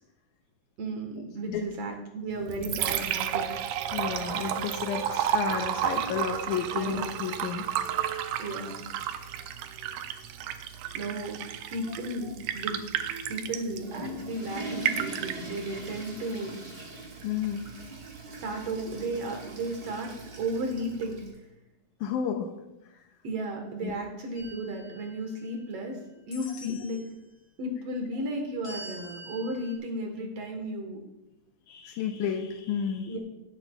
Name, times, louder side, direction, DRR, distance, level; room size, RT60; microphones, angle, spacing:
voice 1, 0.8-3.4 6.8-6.9 8.4-8.8 10.9-11.4 11.7-12.8 13.3-16.6 18.3-20.1 20.4-21.2 23.2-26.0 26.3-27.0 27.6-31.0 33.1-33.2, right 1 dB, 60° right, 2 dB, 2.3 m, -34 dB
Liquid, 2.3-21.3, right 10 dB, 85° right, 2.1 m, -34 dB
voice 2, 3.9-7.7 8.1-8.4 9.4-9.5 17.2-17.7 22.0-22.5 22.8-23.0 23.8-23.9 26.7-26.8 31.7-33.2, left 7 dB, 85° left, 3 dB, 2.2 m, -32 dB
Water / Toilet flush, 13.5-21.4, right 2 dB, 25° right, 2.0 m, -42 dB
sound 1, 24.3-25.8 26.3-27.2 28.6-29.8, equal, 65° left, 3.2 m, -46 dB
18.0 x 8.4 x 2.3 m, 0.92 s
omnidirectional pair, 3.4 m